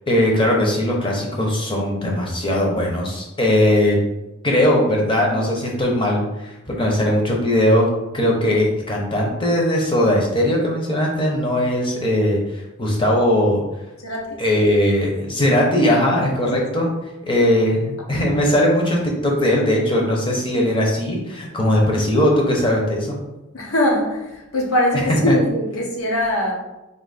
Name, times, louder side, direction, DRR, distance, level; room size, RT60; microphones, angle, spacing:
voice 1, 0.1-4.0 4.4-7.9 8.1-12.4 12.8-13.6 14.4-16.9 17.2-23.2 25.3-25.4, left 1 dB, 25° left, -1 dB, 0.8 m, -19 dB
voice 2, 14.0-14.4 16.3-16.6 23.5-26.5, left 1 dB, 80° left, -2 dB, 1.1 m, -22 dB
3.9 x 2.8 x 4.1 m, 1.0 s
head